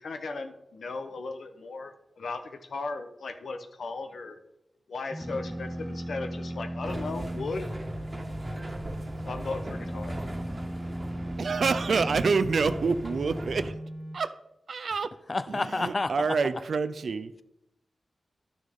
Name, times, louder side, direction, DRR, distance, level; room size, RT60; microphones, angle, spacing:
voice 1, 0.0-4.4 4.9-7.7 9.2-10.1, left 3 dB, 80° left, 7 dB, 0.9 m, -36 dB
sound 1, 5.1-14.2, right 1 dB, 10° right, 0.5 m, -37 dB
sound 2, 6.8-13.7, right 1 dB, 30° right, 1.5 m, -39 dB
voice 2, 11.4-13.7 14.1-14.4 14.7-15.1 15.5-17.3, right 4 dB, 75° right, 13 dB, 0.5 m, -27 dB
voice 3, 15.3-16.4, left 3 dB, 45° left, 14 dB, 0.5 m, -29 dB
11.5 x 6.3 x 3.6 m, 0.85 s
cardioid pair, 50°, 0 cm